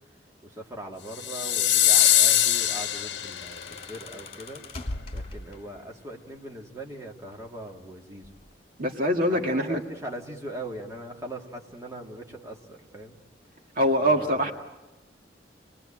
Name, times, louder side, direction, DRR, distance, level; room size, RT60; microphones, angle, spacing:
voice 1, 0.2-4.8 5.1-8.4 9.3-13.2 14.0-14.5, right 1 dB, 20° right, 0 dB, 2.4 m, -40 dB
sound 1, 1.2-3.6, left 11 dB, 80° left, 0.9 m, -22 dB
sound 2, 2.5-5.9 7.1-7.8 8.2-8.5, left 2 dB, 35° left, 2.7 m, -40 dB
voice 2, 8.8-9.8 13.8-14.5, equal, 55° right, 3 dB, 1.9 m, -23 dB
28.5 x 20.5 x 8.9 m, 1.1 s
head